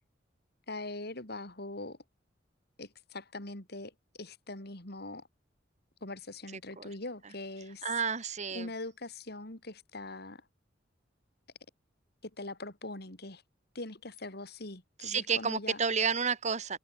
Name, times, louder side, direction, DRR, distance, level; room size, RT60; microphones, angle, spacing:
voice 1, 0.7-2.0 2.8-3.9 4.2-5.3 6.0-7.9 8.5-10.4 12.2-13.4 13.7-15.8, left 2 dB, 60° left, 4.5 m, -42 dB
voice 2, 7.8-8.7 15.0-16.8, right 6 dB, 40° right, 2.0 m, -30 dB
head